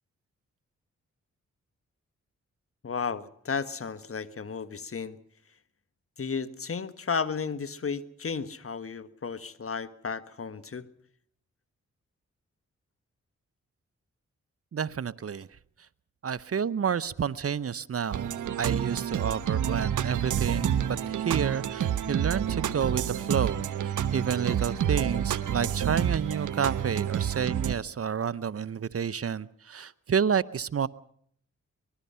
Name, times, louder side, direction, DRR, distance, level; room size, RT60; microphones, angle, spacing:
voice 1, 2.8-5.2 6.2-10.9, left 5 dB, 50° left, 13 dB, 1.5 m, -33 dB
voice 2, 14.7-15.5 16.2-30.9, right 7 dB, 50° right, 17 dB, 0.8 m, -30 dB
sound 1, 18.1-27.8, right 9 dB, 85° right, 1.2 m, -29 dB
24.5 x 20.5 x 5.7 m, 0.65 s
cardioid pair, 50°, 29 cm